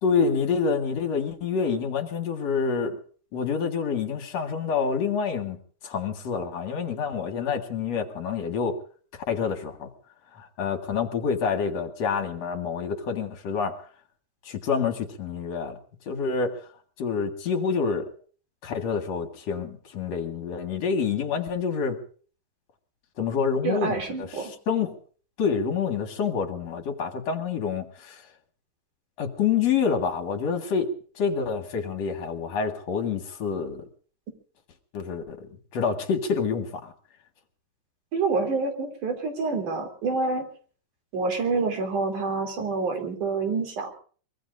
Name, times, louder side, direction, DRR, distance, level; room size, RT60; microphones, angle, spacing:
voice 1, 0.0-3.0 3.3-5.6 5.8-8.8 9.3-9.9 10.3-13.8 14.5-15.8 16.1-16.6 17.0-18.1 18.6-22.0 23.2-24.9 25.4-28.2 29.2-30.9 31.2-33.8 34.9-36.9, left 6 dB, 60° left, 5 dB, 2.9 m, -27 dB
voice 2, 23.6-24.5 38.1-40.5 41.1-43.9, right 4 dB, 80° right, 4 dB, 4.6 m, -27 dB
24.0 x 22.5 x 2.6 m, 0.43 s
omnidirectional pair, 3.5 m